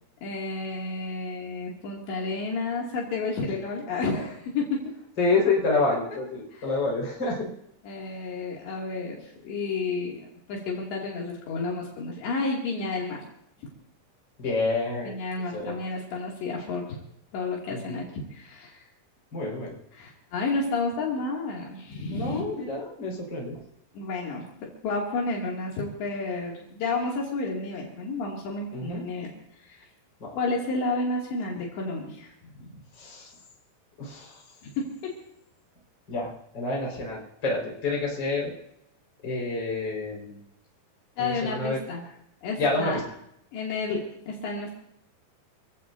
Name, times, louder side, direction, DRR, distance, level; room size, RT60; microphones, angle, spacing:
voice 1, 0.2-4.8 6.5-6.7 7.8-13.2 15.0-17.0 17.3-18.8 19.9-22.4 23.9-24.4 24.8-29.3 29.6-29.8 30.3-32.8 34.6-35.1 41.2-42.0 42.4-43.0 43.5-44.0 44.3-44.8, left 3 dB, 65° left, -2 dB, 4.6 m, -31 dB
voice 2, 5.2-7.5 14.4-15.1 15.5-15.8 17.7-18.1 19.3-19.7 22.1-23.6 28.7-29.0 30.2-30.3 33.0-33.3 34.0-34.4 36.1-38.5 39.2-40.4 41.2-41.8 42.6-43.0, left 3 dB, 25° left, -2 dB, 5.0 m, -28 dB
27.0 x 16.5 x 2.7 m, 0.76 s
omnidirectional pair, 5.4 m